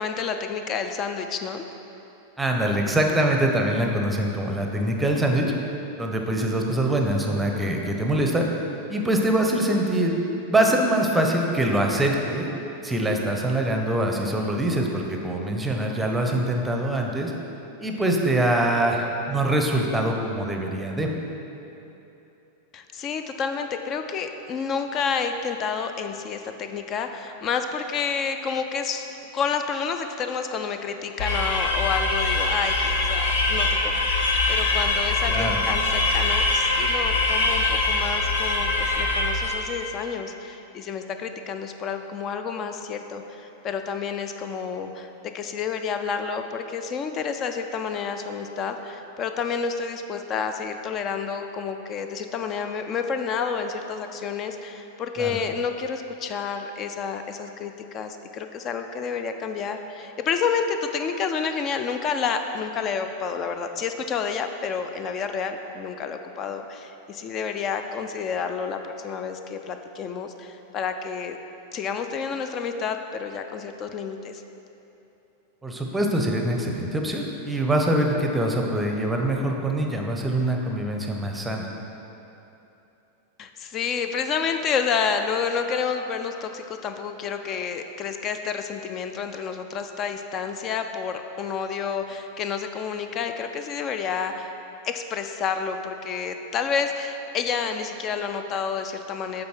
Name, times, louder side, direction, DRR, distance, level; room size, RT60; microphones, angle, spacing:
voice 1, 0.0-1.6 22.7-29.0 29.3-71.4 71.7-74.4 83.4-94.5 94.8-99.4, left 6 dB, 30° left, 7 dB, 0.4 m, -29 dB
voice 2, 2.4-5.5 6.0-8.5 8.9-10.2 10.5-12.5 12.8-17.3 17.8-21.1 35.3-35.6 55.2-55.4 75.6-81.7, right 1 dB, 10° right, 1 dB, 0.7 m, -24 dB
sound 1, 31.2-39.8, left 2 dB, 55° left, 0.7 m, -23 dB
8.4 x 3.9 x 4.5 m, 3.0 s
figure-of-eight pair, 90°, 0 cm